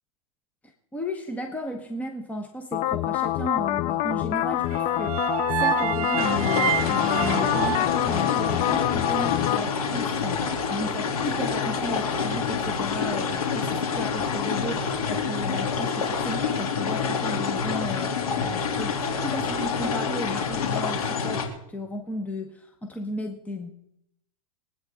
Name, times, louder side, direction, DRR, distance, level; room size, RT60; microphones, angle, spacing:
voice 1, 0.9-23.7, left 1 dB, 10° left, 4 dB, 1.3 m, -34 dB
sound 1, 2.7-9.6, left 14 dB, 35° left, 0.5 m, -26 dB
sound 2, 4.7-8.9, right 11 dB, 70° right, 0.8 m, -29 dB
sound 3, 6.2-21.5, left 5 dB, 85° left, 3.2 m, -27 dB
23.0 x 9.1 x 3.8 m, 0.76 s
hypercardioid pair, 120°, 19 cm